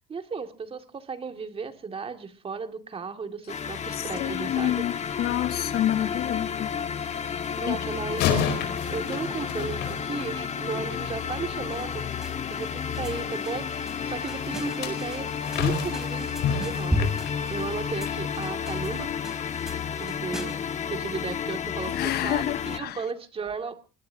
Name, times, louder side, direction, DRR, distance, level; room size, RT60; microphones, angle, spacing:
voice 1, 0.0-4.9 5.2-5.4 7.6-17.1 17.5-19.3 20.0-20.6 20.9-23.8, right 5 dB, 35° right, 2.3 m, -35 dB
sound 1, 3.5-22.8, left 7 dB, 45° left, 1.6 m, -32 dB
voice 2, 3.9-6.7 7.7-7.8 21.9-23.0, left 12 dB, 70° left, 1.0 m, -28 dB
sound 2, 8.1-10.6 14.4-18.2 18.6-18.8 19.4-19.5, left 7 dB, 85° left, 4.7 m, -31 dB
sound 3, 11.7-20.7, left 1 dB, 5° right, 3.8 m, -36 dB
22.0 x 21.0 x 2.8 m
cardioid pair, 110°, 17 cm